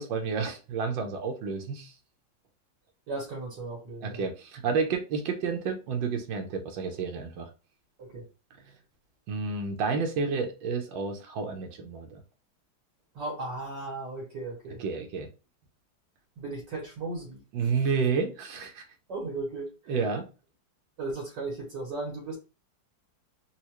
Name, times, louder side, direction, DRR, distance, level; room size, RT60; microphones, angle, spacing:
voice 1, 0.0-1.9 4.0-7.5 9.3-12.2 14.8-15.3 17.5-18.8 19.9-20.2, right 5 dB, 85° right, 1.5 m, -30 dB
voice 2, 3.1-4.2 8.0-8.3 13.1-14.8 16.4-17.7 19.1-19.9 21.0-22.4, right 2 dB, 65° right, 2.0 m, -36 dB
4.4 x 2.4 x 2.9 m
omnidirectional pair, 2.0 m